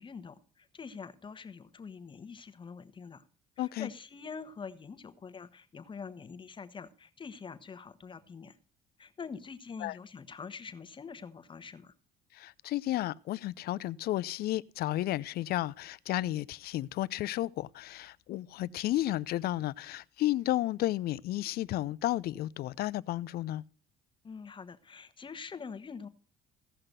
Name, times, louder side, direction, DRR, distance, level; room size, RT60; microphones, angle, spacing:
voice 1, 0.0-3.2 3.6-8.6 9.0-11.9 24.2-26.1, left 5 dB, 30° left, 1.1 m, -45 dB
voice 2, 3.6-3.9 9.8-10.0 12.3-23.6, left 15 dB, 65° left, 0.5 m, -32 dB
16.0 x 5.8 x 6.7 m
cardioid pair, 110°, 17 cm